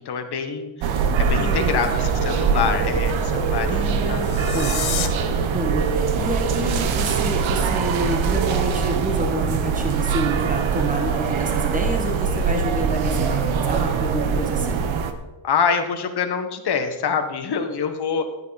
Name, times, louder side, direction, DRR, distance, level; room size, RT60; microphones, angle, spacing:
voice 1, 0.1-0.7 1.2-3.8 4.1-4.4 15.4-18.3, left 6 dB, 50° left, 6 dB, 1.7 m, -25 dB
sound 1, 0.8-15.1, right 5 dB, 70° right, 1.3 m, -22 dB
voice 2, 1.3-2.1 3.7-5.1 5.5-14.9, right 2 dB, 15° right, 2 dB, 1.8 m, -28 dB
sound 2, 4.1-5.1, left 11 dB, 75° left, 1.4 m, -29 dB
13.5 x 9.5 x 4.3 m, 1.1 s
cardioid pair, 105°, 48 cm